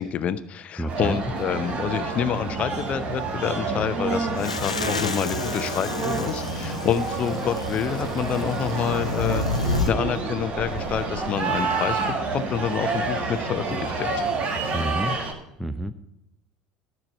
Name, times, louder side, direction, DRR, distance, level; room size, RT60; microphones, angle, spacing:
voice 1, 0.0-14.2, left 8 dB, 40° left, 13 dB, 0.7 m, -28 dB
voice 2, 0.8-1.2 14.7-15.2 15.6-15.9, right 1 dB, ahead, 10 dB, 0.7 m, -28 dB
sound 1, 0.9-15.3, right 3 dB, 40° right, 1.7 m, -29 dB
sound 2, 4.4-9.9, left 3 dB, 85° left, 0.8 m, -30 dB
13.0 x 6.8 x 5.3 m, 0.87 s
figure-of-eight pair, 65°, 4 cm